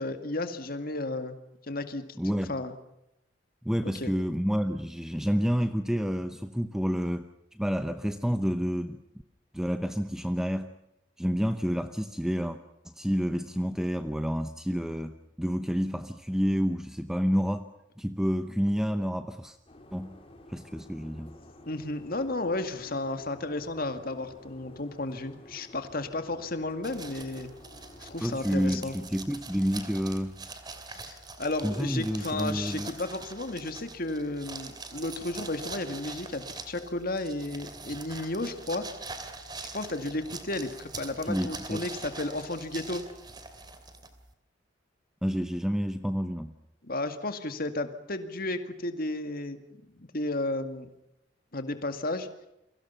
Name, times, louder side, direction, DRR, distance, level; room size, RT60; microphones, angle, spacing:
voice 1, 0.0-1.3 1.7-2.1 2.5-2.7 3.8-4.1 21.7-27.5 28.0-29.0 30.9-38.9 39.7-43.1 46.8-49.6 50.0-50.9 51.5-52.3, left 2 dB, 50° left, 8 dB, 2.1 m, -33 dB
voice 2, 2.2-2.6 3.6-9.0 9.5-10.7 11.2-12.6 12.8-17.7 18.0-19.6 19.9-20.2 20.5-21.3 28.2-30.4 31.6-32.9 41.2-41.8 45.2-46.5, equal, 5° right, 8 dB, 0.8 m, -29 dB
sound 1, 19.7-28.3, left 1 dB, 30° left, 3.4 m, -52 dB
sound 2, 26.8-44.3, right 3 dB, 20° right, 2.7 m, -43 dB
29.0 x 23.5 x 5.7 m, 0.85 s
head